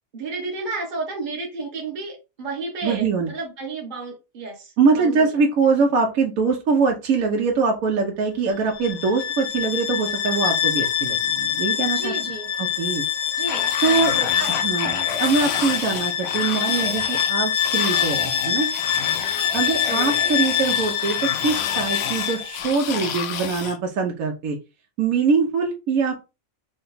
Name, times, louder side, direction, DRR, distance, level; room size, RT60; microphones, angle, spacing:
voice 1, 0.1-5.3 11.9-12.5 13.4-14.6 19.8-20.1, right 3 dB, 40° right, -1 dB, 1.1 m, -32 dB
voice 2, 2.8-3.3 4.8-12.1 12.6-13.0 13.8-14.1 14.6-18.7 19.5-24.6 25.0-26.2, right 4 dB, 80° right, 1 dB, 1.1 m, -23 dB
Bowed string instrument, 8.7-22.6, left 9 dB, 80° left, 1.1 m, -24 dB
sound 1, 13.5-23.8, left 8 dB, 65° left, 0.7 m, -30 dB
3.8 x 2.2 x 3.9 m, 0.27 s
omnidirectional pair, 1.4 m